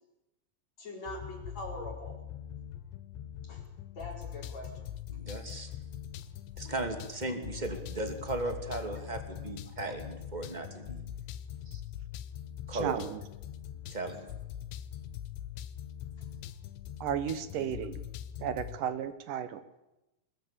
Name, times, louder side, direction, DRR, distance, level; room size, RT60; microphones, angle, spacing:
voice 1, 0.8-2.2 3.4-3.6 4.0-4.7 16.2-16.3, left 1 dB, 40° left, 0 dB, 5.4 m, -42 dB
sound 1, 1.1-18.8, left 10 dB, 90° left, 3.4 m, -43 dB
voice 2, 5.1-5.7 6.6-11.0 11.6-11.8 12.7-13.0 13.9-14.3 17.6-17.7, right 2 dB, 15° right, 6 dB, 1.6 m, -36 dB
voice 3, 12.7-13.2 17.0-18.0 18.4-19.6, right 9 dB, 70° right, 13 dB, 2.1 m, -34 dB
23.0 x 20.5 x 8.5 m, 0.94 s
omnidirectional pair, 5.0 m